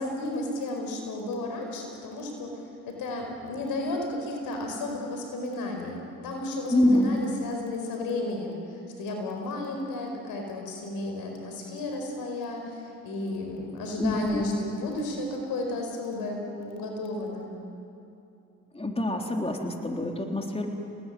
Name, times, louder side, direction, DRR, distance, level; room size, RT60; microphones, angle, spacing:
voice 1, 0.0-2.6 2.9-17.5, left 2 dB, 90° left, 2 dB, 4.9 m, -33 dB
voice 2, 6.7-7.2 14.0-14.5 18.7-20.7, left 1 dB, 15° left, 2 dB, 3.7 m, -26 dB
27.5 x 19.0 x 9.3 m, 2.7 s
supercardioid pair, 55°, 34 cm